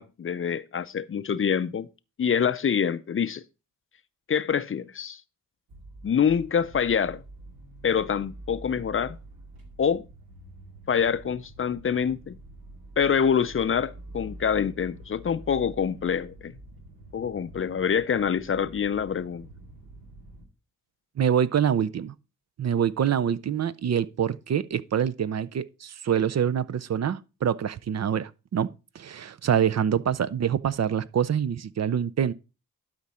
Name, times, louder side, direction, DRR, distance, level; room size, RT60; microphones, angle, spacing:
voice 1, 0.0-1.9 2.2-3.4 4.3-5.2 6.0-7.2 7.8-9.2 9.8-10.0 10.9-12.4 13.0-16.5 17.1-19.5, left 7 dB, 40° left, 0.5 m, -26 dB
sound 1, 5.7-20.5, right 1 dB, 85° right, 2.4 m, -46 dB
voice 2, 21.2-22.1 22.6-28.7 28.9-32.3, right 8 dB, 50° right, 0.5 m, -25 dB
12.0 x 5.1 x 4.2 m
cardioid pair, 95°, 34 cm